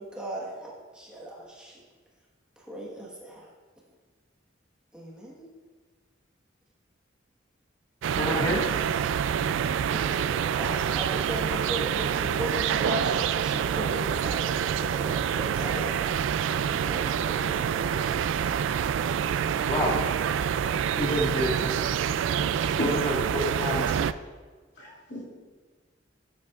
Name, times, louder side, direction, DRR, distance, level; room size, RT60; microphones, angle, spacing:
voice 1, 0.0-1.8 2.6-3.5 4.9-5.5 9.9-16.4 16.7-18.2, right 1 dB, 5° right, -5 dB, 1.3 m, -37 dB
sound 1, 8.0-24.1, right 8 dB, 80° right, 0.3 m, -27 dB
voice 2, 8.1-8.6 19.6-20.0 20.9-21.7 22.8-24.0 24.9-25.0, left 1 dB, 20° left, -5 dB, 1.6 m, -28 dB
voice 3, 24.8-25.2, left 1 dB, 60° left, -3 dB, 2.6 m, -33 dB
14.5 x 8.0 x 2.4 m, 1.4 s
head